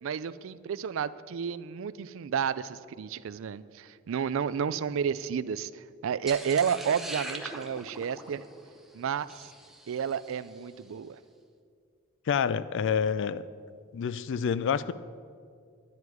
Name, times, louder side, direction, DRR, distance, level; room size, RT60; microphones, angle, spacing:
voice 1, 0.0-8.4 8.9-9.5 9.9-11.2, right 7 dB, 65° right, 16 dB, 0.4 m, -31 dB
sound 1, 6.3-10.6, right 1 dB, ahead, 0.7 m, -42 dB
voice 2, 12.3-13.5 13.9-14.9, left 7 dB, 60° left, 16 dB, 0.4 m, -28 dB
10.5 x 9.7 x 4.8 m, 2.2 s
head